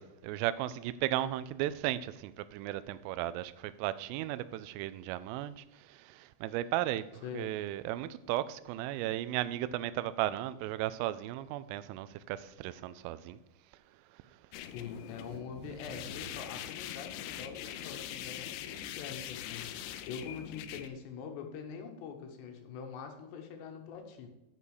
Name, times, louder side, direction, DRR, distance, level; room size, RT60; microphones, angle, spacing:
voice 1, 0.0-13.4, right 14 dB, 85° right, 3.1 m, -35 dB
voice 2, 7.2-7.6 14.7-24.3, left 6 dB, 70° left, 3.0 m, -44 dB
sound 1, 14.5-20.9, left 11 dB, 90° left, 3.3 m, -43 dB
10.5 x 5.5 x 6.4 m
omnidirectional pair, 5.8 m